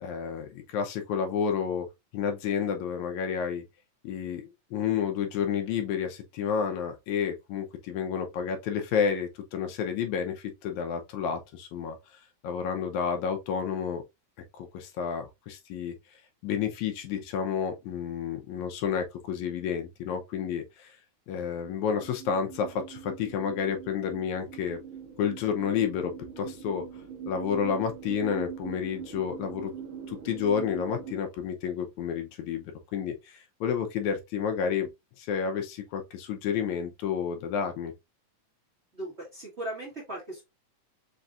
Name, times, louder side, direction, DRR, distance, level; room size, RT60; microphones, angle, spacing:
voice 1, 0.0-1.9 2.1-3.6 4.0-12.0 12.4-14.0 14.5-15.9 16.4-21.0 21.3-24.8 25.2-26.9 27.3-29.7 30.1-34.9 35.2-37.9, left 7 dB, 80° left, 2.1 m, -30 dB
sound 1, 21.4-31.2, right 7 dB, 85° right, 1.1 m, -42 dB
voice 2, 38.9-40.4, right 1 dB, 25° right, 1.6 m, -37 dB
5.4 x 3.5 x 2.4 m
omnidirectional pair, 3.4 m